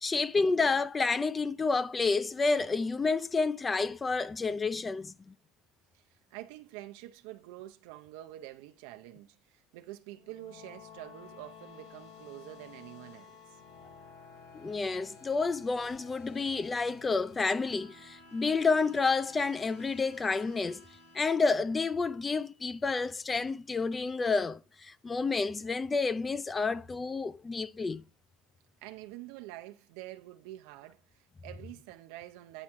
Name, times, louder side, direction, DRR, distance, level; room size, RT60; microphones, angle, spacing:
voice 1, 0.0-5.1 14.5-20.8 21.1-28.0, left 4 dB, 20° left, 0.4 m, -29 dB
voice 2, 5.9-13.4 28.8-32.6, right 16 dB, 80° right, 0.7 m, -47 dB
sound 1, 10.1-22.5, left 5 dB, 90° left, 2.1 m, -54 dB
9.9 x 3.5 x 4.5 m
supercardioid pair, 115°, 0 cm